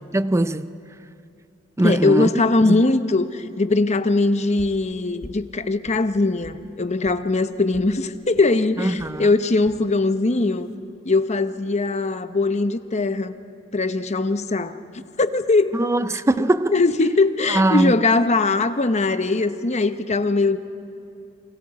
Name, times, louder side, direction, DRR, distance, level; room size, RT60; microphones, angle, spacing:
voice 1, 0.1-0.7 1.8-2.3 2.6-2.8 8.8-9.3 15.7-16.7 17.5-17.9, right 1 dB, 15° right, 0.5 m, -21 dB
voice 2, 1.8-10.7 11.0-13.3 13.7-15.8 16.7-20.6, left 3 dB, 35° left, 0.8 m, -21 dB
sound 1, 4.6-4.8 5.2-5.5 5.8-6.6 7.0-7.2 7.7-7.9 8.3-8.5 9.0-9.2 9.6-9.8 10.4-10.7, left 1 dB, 75° left, 1.6 m, -44 dB
28.5 x 25.0 x 4.8 m
head